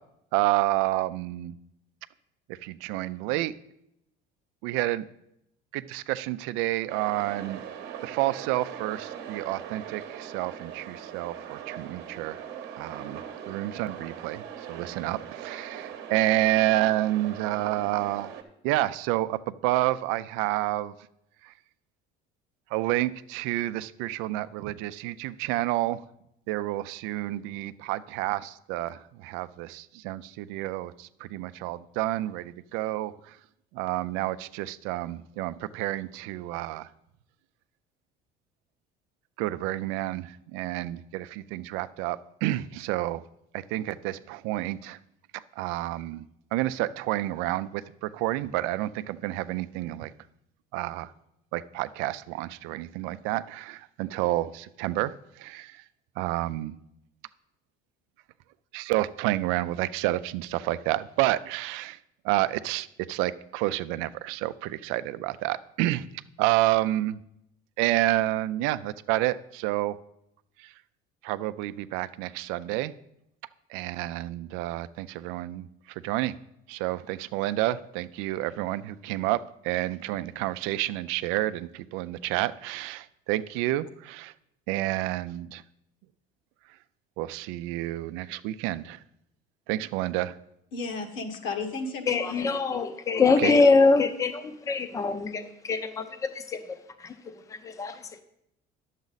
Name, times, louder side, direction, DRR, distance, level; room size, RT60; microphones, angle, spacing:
voice 1, 0.3-1.5 2.5-3.5 4.6-5.1 5.7-7.6 8.0-12.4 12.8-13.2 13.5-14.4 14.7-18.3 18.6-20.9 21.4-21.5 22.7-26.0 26.5-33.4 33.7-36.9 39.4-43.2 43.5-45.0 45.3-46.2 46.5-50.1 50.7-51.1 51.5-55.8 56.2-56.8 58.7-62.0 62.2-66.1 66.4-67.2 67.8-70.0 70.6-70.7 71.2-72.9 73.7-76.3 76.7-84.3 84.7-85.6 87.2-89.0 89.7-90.4 93.4-93.5, right 16 dB, 85° right, 0.4 m, -29 dB
sound 1, 6.9-18.4, right 9 dB, 55° right, 0.9 m, -40 dB
voice 2, 90.7-92.5, left 3 dB, 75° left, 1.4 m, -34 dB
voice 3, 92.1-96.6 97.0-97.2 97.5-98.0, left 4 dB, 15° left, 0.5 m, -24 dB
10.5 x 7.3 x 4.0 m
cardioid pair, 170°, 20 cm